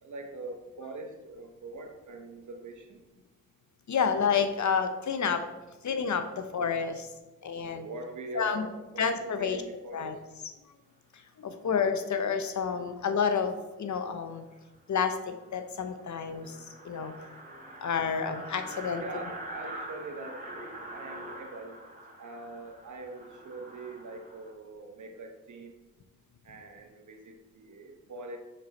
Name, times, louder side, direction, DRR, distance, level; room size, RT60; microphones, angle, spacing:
voice 1, 0.0-3.0 7.6-10.2 19.0-21.8 22.2-25.8 26.4-28.4, right 2 dB, 70° right, 4 dB, 1.0 m, -43 dB
voice 2, 3.9-5.4 5.8-7.1 7.4-7.9 8.4-8.7 9.0-9.6 9.9-10.1 11.4-14.4 14.9-16.6 16.8-17.1 17.8-19.0, left 6 dB, 65° left, 8 dB, 0.7 m, -29 dB
sound 1, 14.6-14.7 15.1-15.2 15.4-15.5 15.8-24.5, right 1 dB, 25° right, 1.9 m, -44 dB
6.1 x 5.1 x 4.1 m, 1.1 s
cardioid pair, 45°, 31 cm